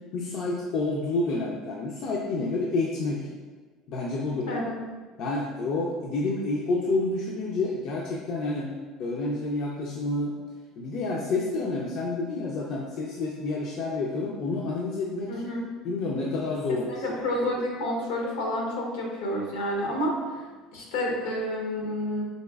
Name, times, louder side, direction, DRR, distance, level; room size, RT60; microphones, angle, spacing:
voice 1, 0.1-3.3 3.9-4.6 5.2-8.7 9.0-10.4 10.8-15.4 15.8-17.2, left 2 dB, 60° left, -2 dB, 0.4 m, -29 dB
voice 2, 4.5-4.8 15.3-15.7 16.9-20.1 20.7-22.2, left 1 dB, 90° left, -1 dB, 0.9 m, -29 dB
4.0 x 3.2 x 2.3 m, 1.4 s
supercardioid pair, 105°, 0 cm